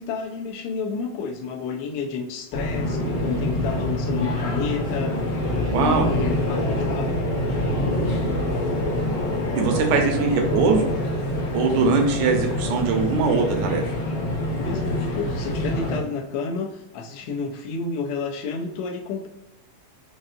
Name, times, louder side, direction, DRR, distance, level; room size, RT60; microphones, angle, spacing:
voice 1, 0.0-5.2 5.6-7.2 14.5-19.3, left 5 dB, 85° left, 1 dB, 1.3 m, -30 dB
sound 1, 2.5-16.0, left 1 dB, 60° left, 1.1 m, -25 dB
voice 2, 5.7-6.1 9.5-10.9 11.5-13.8, right 4 dB, 85° right, 3 dB, 2.1 m, -21 dB
5.1 x 2.7 x 2.4 m, 0.92 s
omnidirectional pair, 3.3 m